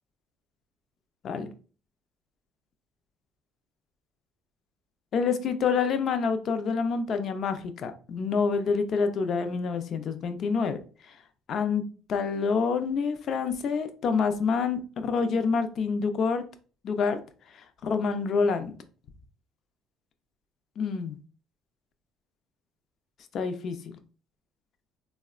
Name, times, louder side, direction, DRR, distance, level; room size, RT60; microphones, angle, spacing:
voice 1, 5.1-10.8 11.5-11.8 12.1-16.4 16.8-17.2 17.8-18.7 20.8-21.2 23.3-23.8, left 5 dB, 45° left, 0.4 m, -27 dB
3.5 x 2.1 x 2.4 m
cardioid pair, 135°, 0 cm